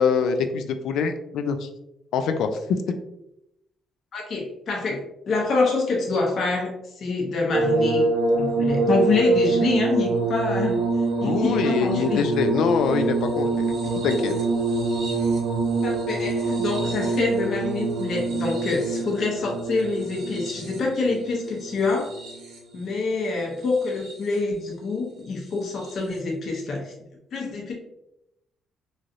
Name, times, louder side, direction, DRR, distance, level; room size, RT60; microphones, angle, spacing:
voice 1, 0.0-1.7 2.1-2.5 11.2-13.7 14.0-14.4, left 6 dB, 80° left, 8 dB, 0.3 m, -24 dB
voice 2, 4.1-10.8 11.2-12.2 13.8-13.9 15.8-22.1 22.7-26.9 27.3-27.7, left 3 dB, 60° left, -1 dB, 0.7 m, -26 dB
sound 1, 7.5-22.8 23.6-24.3 25.8-25.9, right 3 dB, 90° right, 1.1 m, -25 dB
3.1 x 2.7 x 2.4 m, 0.84 s
cardioid pair, 90°, 0 cm